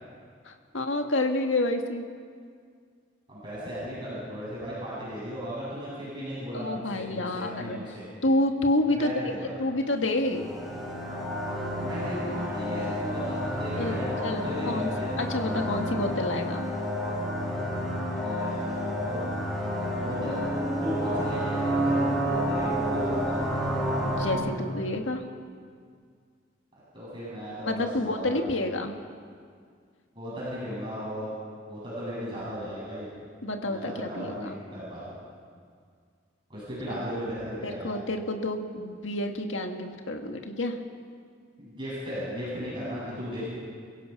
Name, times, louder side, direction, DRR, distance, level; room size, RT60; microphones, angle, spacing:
voice 1, 0.4-2.0 6.5-7.8 8.2-9.3 9.6-10.5 13.8-14.9 15.2-16.7 24.0-25.3 27.6-28.9 33.4-34.6 37.6-40.8, left 1 dB, 85° left, 4 dB, 1.8 m, -29 dB
voice 2, 3.3-8.1 8.9-9.6 11.8-15.3 18.1-19.2 19.9-20.5 20.8-23.5 26.9-28.5 30.1-31.3 31.6-33.1 33.6-35.2 36.5-37.9 41.6-43.5, equal, 25° right, -8 dB, 8.0 m, -36 dB
sound 1, 10.1-24.4, equal, ahead, 6.0 m, -29 dB
29.5 x 16.5 x 5.9 m, 2.1 s
head